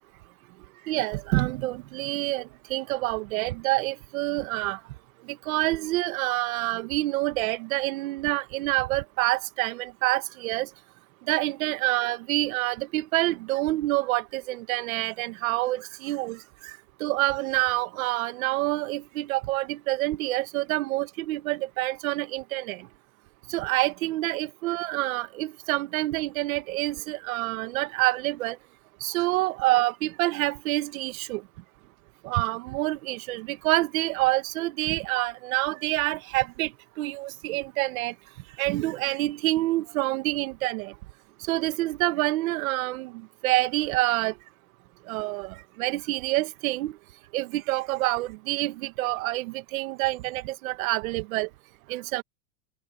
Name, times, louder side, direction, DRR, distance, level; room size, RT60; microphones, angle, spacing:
voice 1, 0.9-4.8 5.3-10.7 11.3-16.7 17.0-22.9 23.5-28.6 29.0-31.4 32.2-36.7 37.0-38.1 38.6-40.9 41.4-43.1 43.4-44.3 45.1-46.9 47.3-51.5 51.9-52.2, right 18 dB, 65° right, 2.1 m, -27 dB
supercardioid pair, 150°, 44 cm